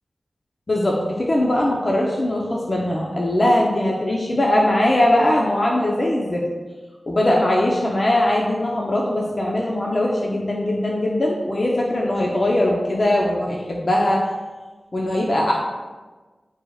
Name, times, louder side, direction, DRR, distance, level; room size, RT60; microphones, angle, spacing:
voice 1, 0.7-6.4 7.1-14.3 14.9-15.6, left 1 dB, 45° left, -2 dB, 0.9 m, -20 dB
10.5 x 5.0 x 2.5 m, 1.3 s
wide cardioid pair, 65°, 0 cm